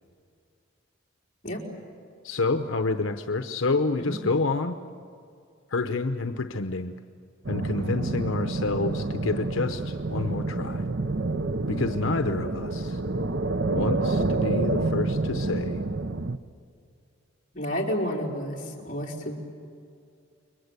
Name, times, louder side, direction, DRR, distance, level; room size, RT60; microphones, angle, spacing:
voice 1, 2.2-4.7 5.7-6.9 7.5-10.8 11.7-13.0 13.7-15.8, left 3 dB, 85° left, 8 dB, 0.9 m, -28 dB
sound 1, 7.5-16.4, right 3 dB, 60° right, 0.8 m, -28 dB
voice 2, 17.5-19.3, equal, 40° left, -2 dB, 4.4 m, -30 dB
29.5 x 22.5 x 8.2 m, 2.4 s
head